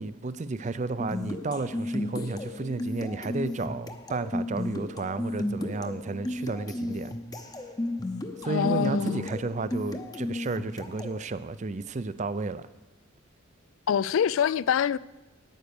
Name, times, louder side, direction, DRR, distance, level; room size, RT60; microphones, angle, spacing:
voice 1, 0.0-7.1 8.4-12.6, right 3 dB, 35° right, 0.4 m, -32 dB
sound 1, 1.0-11.2, left 1 dB, 20° left, 0.7 m, -34 dB
voice 2, 8.4-9.3 13.9-15.0, left 7 dB, 70° left, 0.3 m, -25 dB
9.4 x 9.1 x 6.9 m
head